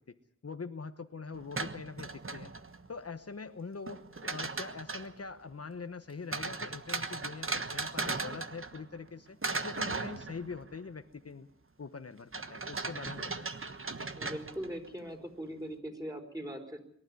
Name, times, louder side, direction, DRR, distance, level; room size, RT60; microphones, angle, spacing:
voice 1, 0.4-2.5 2.9-9.4 9.6-11.5 11.8-13.5, left 4 dB, 55° left, 9 dB, 1.1 m, -43 dB
sound 1, 1.3-2.9 3.9-5.2 6.3-9.1 9.4-10.8 12.3-14.9, right 3 dB, 45° right, 1.4 m, -37 dB
voice 2, 14.2-16.8, equal, 10° right, 3 dB, 4.6 m, -40 dB
23.0 x 12.0 x 9.6 m, 0.71 s
wide cardioid pair, 55°, 29 cm